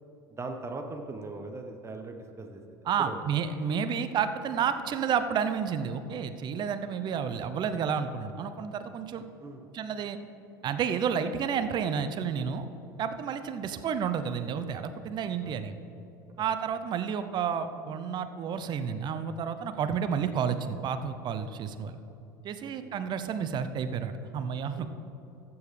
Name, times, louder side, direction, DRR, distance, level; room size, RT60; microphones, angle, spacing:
voice 1, 0.3-3.2 9.4-9.6 15.4-15.6 22.6-22.9 24.8-24.9, right 3 dB, 25° right, 5 dB, 0.9 m, -40 dB
voice 2, 2.9-9.2 9.7-10.2 10.6-12.7 13.0-15.8 16.4-22.0 22.4-24.9, right 7 dB, 40° right, 10 dB, 0.6 m, -31 dB
15.0 x 7.0 x 3.3 m, 2.9 s
hypercardioid pair, 75°, 11 cm